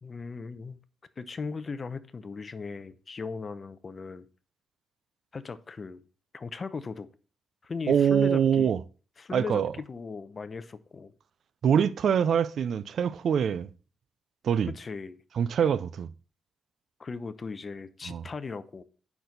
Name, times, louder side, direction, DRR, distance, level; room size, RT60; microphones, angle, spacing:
voice 1, 0.0-0.8 1.2-4.3 5.3-6.0 6.3-7.1 7.6-8.7 9.2-11.1 14.7-15.2 17.0-18.8, left 4 dB, 35° left, 0.7 m, -38 dB
voice 2, 7.9-8.8 9.3-9.7 11.6-13.7 14.4-14.7 15.4-16.1 18.1-18.2, right 8 dB, 60° right, 0.4 m, -24 dB
8.5 x 6.0 x 4.0 m
cardioid pair, 100°, 0 cm